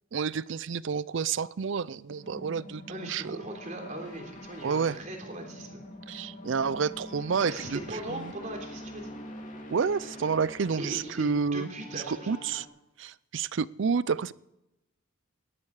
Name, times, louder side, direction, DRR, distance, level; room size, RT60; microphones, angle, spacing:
voice 1, 0.1-3.4 4.6-5.0 6.1-7.8 8.1-8.3 9.7-11.7 11.9-12.7 13.0-14.3, right 5 dB, 65° right, 0.5 m, -29 dB
sound 1, 2.1-12.6, left 1 dB, 40° left, 2.5 m, -45 dB
voice 2, 2.9-5.8 7.4-9.1 10.8-12.3, right 1 dB, 40° right, 3.5 m, -39 dB
19.0 x 13.0 x 4.9 m
head